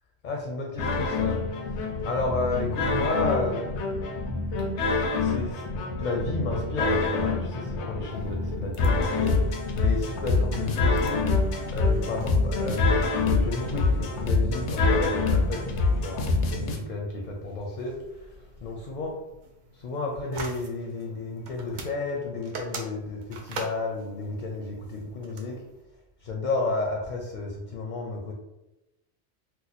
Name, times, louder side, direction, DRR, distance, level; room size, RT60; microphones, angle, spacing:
voice 1, 0.2-1.4 2.0-3.7 5.2-5.6 6.0-11.3 11.7-19.2 19.7-25.6 26.2-28.3, left 3 dB, 55° left, 0 dB, 0.6 m, -32 dB
sound 1, 0.8-16.8, left 3 dB, 85° left, 0.9 m, -26 dB
sound 2, 8.1-25.8, right 3 dB, 55° right, 0.6 m, -46 dB
2.8 x 2.2 x 4.0 m, 0.94 s
omnidirectional pair, 1.1 m